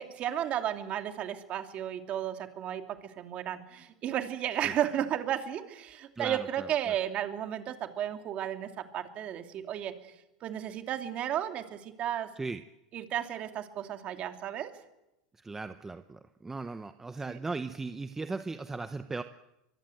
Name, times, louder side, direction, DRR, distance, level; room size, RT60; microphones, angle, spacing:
voice 1, 0.0-9.9 10.4-12.3 12.9-14.7 17.3-17.4, right 10 dB, 35° right, 6 dB, 2.7 m, -33 dB
voice 2, 6.2-6.9 12.4-12.6 15.4-19.2, right 3 dB, 10° right, 9 dB, 0.8 m, -37 dB
24.0 x 23.5 x 8.0 m, 0.92 s
supercardioid pair, 140°, 4 cm